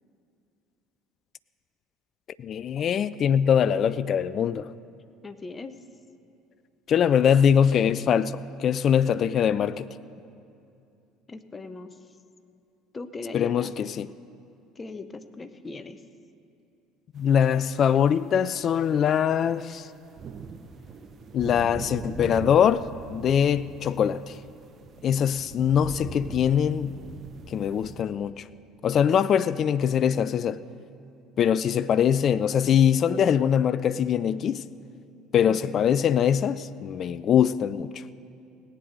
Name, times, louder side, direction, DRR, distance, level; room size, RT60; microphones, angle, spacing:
voice 1, 2.4-4.7 6.9-9.9 13.3-14.1 17.1-19.9 21.3-24.4 25.0-27.0 27.5-28.4 28.8-30.6 31.4-34.6 35.3-38.0, left 8 dB, 45° left, 0.3 m, -23 dB
voice 2, 5.2-5.8 11.3-12.0 12.9-13.7 14.8-16.0 35.5-35.7, left 3 dB, 25° left, 0.8 m, -39 dB
sound 1, 17.7-17.8 18.3-28.0, right 5 dB, 40° right, 0.8 m, -41 dB
18.0 x 8.9 x 6.4 m
figure-of-eight pair, 60°, 0 cm